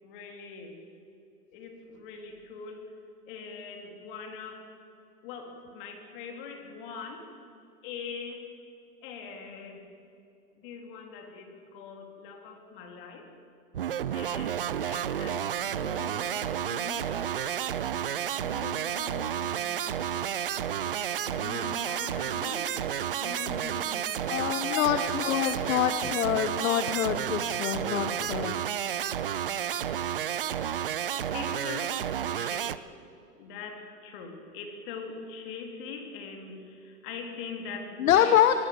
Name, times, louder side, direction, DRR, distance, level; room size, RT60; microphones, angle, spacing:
voice 1, 0.0-0.8 1.5-3.0 3.3-4.6 5.2-7.3 7.8-8.5 9.0-9.9 10.6-13.3 14.1-17.8 18.4-20.3 21.2-24.3 24.7-25.1 25.4-25.6 31.3-32.0 32.3-32.8 33.4-38.6, left 5 dB, 30° left, 3 dB, 3.5 m, -42 dB
sound 1, 13.7-32.8, right 9 dB, 35° right, 0.5 m, -31 dB
voice 2, 24.3-28.5 38.0-38.6, left 10 dB, 55° left, 10 dB, 1.1 m, -25 dB
25.5 x 15.5 x 8.0 m, 2.6 s
hypercardioid pair, 155°, 49 cm